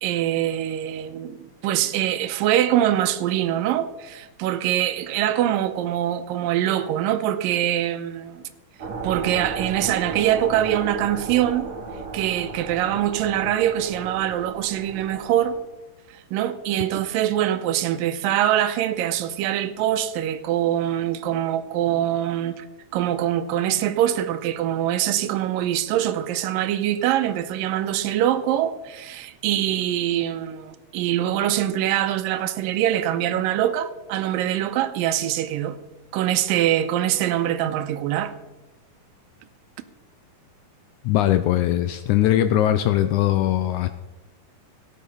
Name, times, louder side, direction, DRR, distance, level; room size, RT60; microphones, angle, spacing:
voice 1, 0.0-8.4 9.0-11.7 12.1-15.5 16.1-22.7 22.9-35.8 36.1-38.3, right 12 dB, 90° right, 2.5 m, -23 dB
sound 1, 8.8-15.6, right 4 dB, 50° right, 3.0 m, -35 dB
voice 2, 41.1-43.9, left 12 dB, 80° left, 1.8 m, -20 dB
17.0 x 8.6 x 5.6 m
omnidirectional pair, 3.9 m